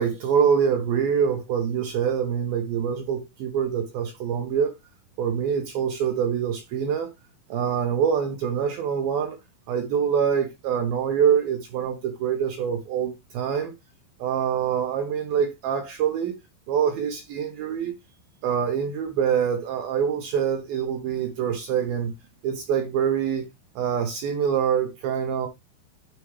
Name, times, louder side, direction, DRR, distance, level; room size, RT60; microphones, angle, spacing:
voice 1, 0.0-4.7 5.2-7.1 7.5-9.4 9.7-13.7 14.2-16.4 16.7-17.9 18.4-22.1 22.4-23.5 23.8-25.5, right 8 dB, 80° right, 2.1 m, -25 dB
9.9 x 4.6 x 3.1 m
omnidirectional pair, 5.5 m